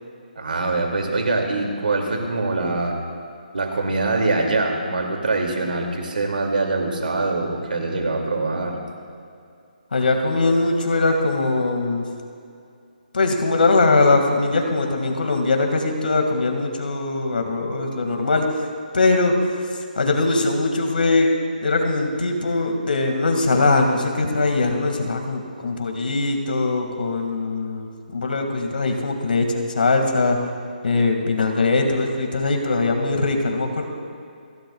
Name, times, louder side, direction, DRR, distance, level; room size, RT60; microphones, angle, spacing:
voice 1, 0.4-3.0 3.5-8.8, right 3 dB, 75° right, 2 dB, 2.6 m, -23 dB
voice 2, 9.9-12.1 13.1-18.7 18.9-19.4 20.0-21.3 21.6-30.4 30.8-33.9, left 3 dB, 75° left, 3 dB, 2.1 m, -21 dB
29.0 x 12.0 x 2.4 m, 2.5 s
hypercardioid pair, 175°, 5 cm